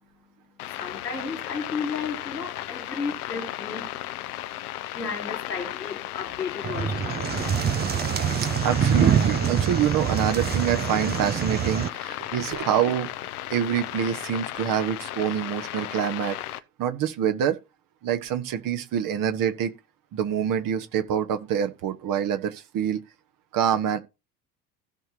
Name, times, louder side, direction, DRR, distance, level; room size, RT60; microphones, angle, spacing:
sound 1, 0.6-16.6, left 14 dB, 65° left, 0.8 m, -35 dB
voice 1, 0.7-4.2 4.9-7.5 8.0-8.1, left 5 dB, 85° left, 2.5 m, -34 dB
sound 2, 6.6-11.9, right 8 dB, 20° right, 0.6 m, -25 dB
voice 2, 8.6-16.4 16.8-17.6 18.0-19.7 20.1-23.0 23.5-24.0, right 9 dB, 45° right, 1.4 m, -26 dB
16.0 x 5.9 x 2.9 m
figure-of-eight pair, 65°, 48 cm